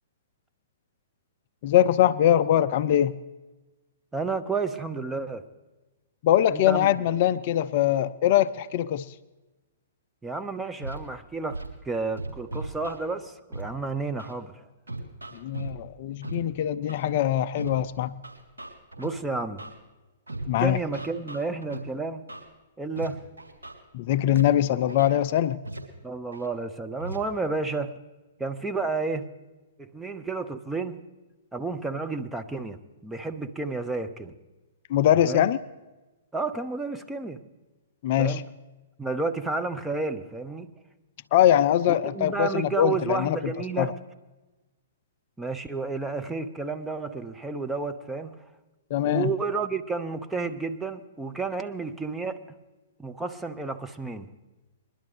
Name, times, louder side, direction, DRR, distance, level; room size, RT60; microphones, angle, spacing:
voice 1, 1.6-3.1 6.2-9.1 15.3-18.1 20.5-20.8 23.9-25.6 34.9-35.6 38.0-38.4 41.3-43.4 43.8-43.9 48.9-49.3, left 11 dB, 45° left, 0.3 m, -22 dB
voice 2, 4.1-5.4 6.5-6.9 10.2-14.6 19.0-19.7 20.5-22.3 22.8-23.3 26.0-28.0 28.4-29.3 29.8-31.0 31.5-34.3 35.2-35.5 36.3-37.4 38.2-38.5 39.0-40.7 41.9-44.0 45.4-48.4 49.0-52.4 53.0-54.3, right 4 dB, 5° right, 0.7 m, -31 dB
Scratching (performance technique), 10.8-11.0 11.5-11.7 12.2-13.0 13.5-13.6 14.2-14.3 14.9-15.7 16.2-16.3 16.9-17.1 17.6-17.7 18.2-19.1 19.6-19.7 20.3-20.5 20.9-21.8 22.3-22.4 23.0-23.1 23.4-23.7 24.3-24.4 24.9-25.1 25.6-25.8 26.3-26.5 27.0-27.2, right 2 dB, 75° right, 2.9 m, -37 dB
21.5 x 11.5 x 3.3 m
figure-of-eight pair, 115°, 0 cm